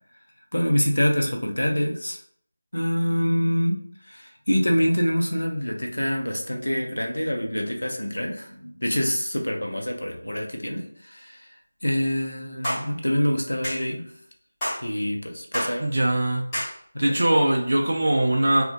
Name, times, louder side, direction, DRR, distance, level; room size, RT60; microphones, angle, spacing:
voice 1, 0.5-2.2 2.7-3.8 4.1-11.5 11.8-14.0 14.8-15.8 17.0-17.2, equal, 70° left, 2 dB, 0.5 m, -25 dB
sound 1, 12.6-12.9 13.6-13.8 14.6-14.8 15.5-15.8 16.5-16.7, equal, 10° left, 0.8 m, -28 dB
voice 2, 15.8-16.5 17.0-18.6, right 1 dB, 45° right, 0 dB, 0.3 m, -21 dB
2.2 x 2.1 x 2.7 m, 0.64 s
figure-of-eight pair, 165°, 0 cm